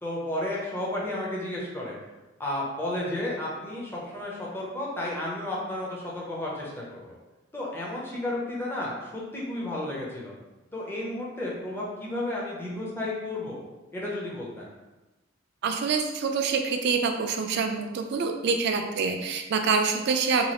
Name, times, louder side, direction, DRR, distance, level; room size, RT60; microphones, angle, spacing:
voice 1, 0.0-1.9 2.4-7.2 7.5-10.3 10.7-13.6 13.9-14.7, left 1 dB, 10° left, -5 dB, 0.6 m, -32 dB
voice 2, 15.6-20.5, right 5 dB, 60° right, 5 dB, 0.3 m, -26 dB
3.0 x 2.3 x 2.9 m, 1.1 s
head